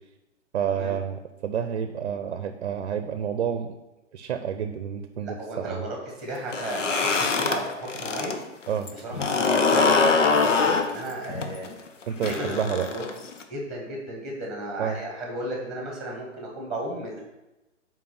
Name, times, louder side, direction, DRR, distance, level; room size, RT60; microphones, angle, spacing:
voice 1, 0.5-3.8 4.1-5.9 8.7-8.9 12.1-12.9 14.8-15.0, right 8 dB, 55° right, 8 dB, 0.6 m, -29 dB
voice 2, 5.2-8.4 8.9-11.7 12.2-13.0 13.5-17.2, right 1 dB, ahead, -1 dB, 1.4 m, -34 dB
sound 1, 6.4-8.3 8.7-13.4, left 4 dB, 80° left, 1.0 m, -23 dB
5.9 x 4.6 x 5.9 m, 1.0 s
hypercardioid pair, 145°, 37 cm